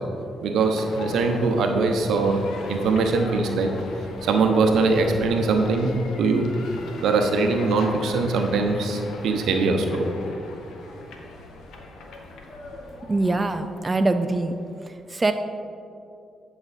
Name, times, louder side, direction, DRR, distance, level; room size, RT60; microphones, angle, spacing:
voice 1, 0.4-2.4 2.7-3.7 4.2-6.5 7.0-10.0, right 3 dB, 80° right, 4 dB, 0.8 m, -22 dB
sound 1, 0.6-14.7, left 2 dB, 80° left, 0.9 m, -40 dB
voice 2, 13.1-14.5 15.1-15.3, right 2 dB, 30° right, 7 dB, 0.4 m, -23 dB
8.9 x 5.9 x 4.2 m, 2.7 s
supercardioid pair, 60°, 0 cm